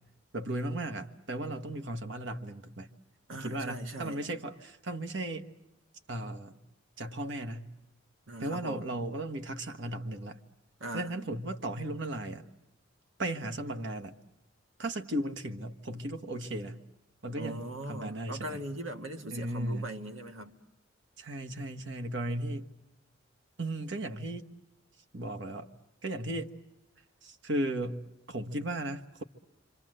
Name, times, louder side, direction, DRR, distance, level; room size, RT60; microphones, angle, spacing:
voice 1, 0.3-2.9 3.3-5.5 6.1-6.6 7.0-7.7 8.4-10.4 10.9-12.5 13.2-14.2 14.8-16.8 17.2-18.6 19.3-19.9 21.2-22.7 23.6-24.5 25.1-25.7 26.0-26.5 27.2-28.0 28.3-29.2, right 1 dB, 65° right, 6 dB, 1.4 m, -36 dB
voice 2, 3.3-4.2 8.3-8.9 10.8-11.2 17.4-20.6, right 1 dB, 85° right, 6 dB, 1.8 m, -40 dB
28.0 x 25.5 x 7.8 m, 0.90 s
head